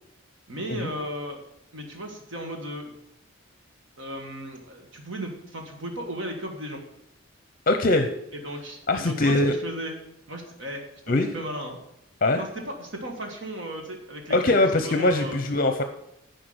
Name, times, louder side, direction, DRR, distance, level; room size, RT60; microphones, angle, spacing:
voice 1, 0.5-1.4 1.7-2.9 4.0-6.8 8.4-10.0 10.3-11.8 12.3-15.4, equal, 60° right, 2 dB, 1.7 m, -35 dB
voice 2, 7.7-8.1 8.9-9.5 11.1-11.3 12.2-12.4 14.3-15.8, left 2 dB, 45° left, 7 dB, 0.6 m, -22 dB
10.5 x 5.1 x 7.8 m, 0.80 s
head